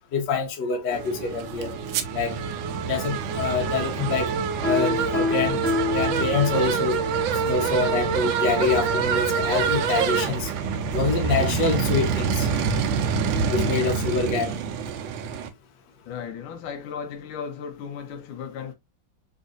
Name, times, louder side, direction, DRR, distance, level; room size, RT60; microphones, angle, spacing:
voice 1, 0.1-1.8 2.1-2.4 2.9-4.3 4.6-7.0 7.4-10.5 10.9-12.5 13.5-14.6, left 5 dB, 65° left, 1.4 m, -26 dB
sound 1, 0.9-15.5, right 6 dB, 75° right, 1.3 m, -26 dB
Piano, 4.6-6.9, left 4 dB, 45° left, 1.1 m, -27 dB
voice 2, 16.0-18.7, left 7 dB, 85° left, 1.5 m, -36 dB
3.6 x 3.1 x 2.4 m
omnidirectional pair, 2.3 m